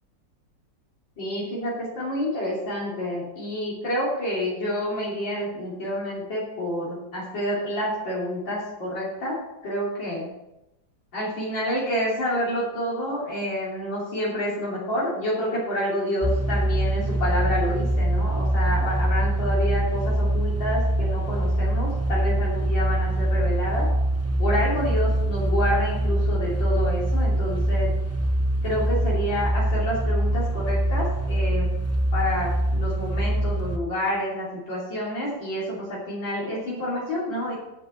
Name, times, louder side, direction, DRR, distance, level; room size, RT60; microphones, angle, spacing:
voice 1, 1.2-10.3 11.1-23.9 24.4-28.0 28.6-31.8 32.1-37.6, equal, 80° left, -7 dB, 3.9 m, -28 dB
sound 1, 16.2-33.8, right 1 dB, 15° right, 0.5 m, -24 dB
11.5 x 8.2 x 5.8 m, 0.93 s
omnidirectional pair, 2.0 m